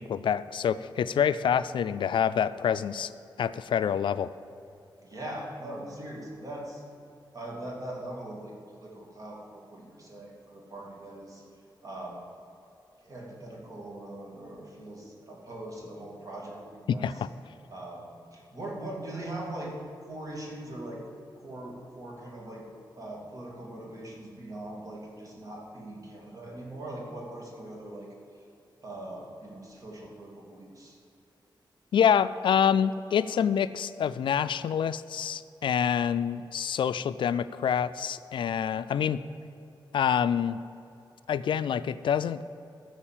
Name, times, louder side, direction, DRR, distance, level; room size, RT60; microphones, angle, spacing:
voice 1, 0.0-3.1 3.4-4.3 16.9-17.3 31.9-39.2 39.9-40.6 41.3-42.4, left 8 dB, 80° left, 13 dB, 0.4 m, -26 dB
voice 2, 1.9-2.2 5.0-6.8 7.3-11.4 11.8-12.3 13.0-17.1 17.7-19.7 20.1-21.0 21.4-22.6 23.0-28.1 28.8-31.0, right 1 dB, 45° right, -2 dB, 2.4 m, -41 dB
14.5 x 4.8 x 7.4 m, 2.7 s
wide cardioid pair, 165°, 8 cm